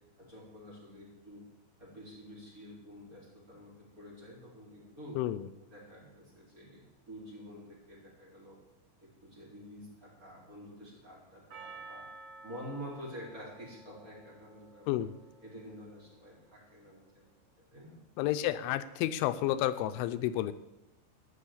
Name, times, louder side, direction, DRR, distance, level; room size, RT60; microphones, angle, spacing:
voice 1, 0.2-1.4 1.8-5.2 5.7-6.8 7.1-8.6 9.0-12.1 12.4-14.9 15.4-17.3 17.7-18.0, equal, 20° right, -5 dB, 4.0 m, -48 dB
voice 2, 5.2-5.5 14.9-15.1 18.2-20.5, left 13 dB, 85° left, 12 dB, 3.0 m, -31 dB
Percussion, 11.5-16.0, right 3 dB, 50° right, 2.2 m, -52 dB
15.5 x 6.3 x 8.6 m, 0.94 s
omnidirectional pair, 5.4 m